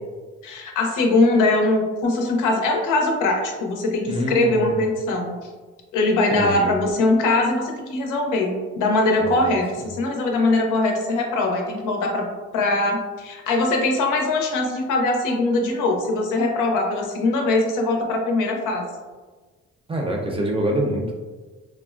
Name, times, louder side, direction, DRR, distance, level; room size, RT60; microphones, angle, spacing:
voice 1, 0.4-5.4 5.9-12.3 12.5-18.8, left 2 dB, 90° left, 2 dB, 0.6 m, -21 dB
voice 2, 4.1-4.8 6.3-6.8 9.2-9.6 19.9-21.1, equal, 20° right, 0 dB, 0.5 m, -25 dB
3.4 x 2.1 x 2.4 m, 1.3 s
cardioid pair, 90°, 30 cm